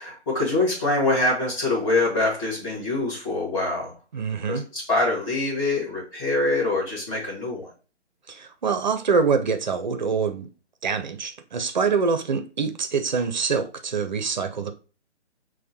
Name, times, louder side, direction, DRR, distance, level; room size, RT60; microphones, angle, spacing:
voice 1, 0.0-4.0 4.5-7.7, left 2 dB, 25° left, 1.8 m, -24 dB
voice 2, 4.1-4.7 8.3-10.5 10.8-14.7, right 5 dB, 40° right, 0.6 m, -25 dB
6.4 x 2.2 x 2.9 m
figure-of-eight pair, 140°, 34 cm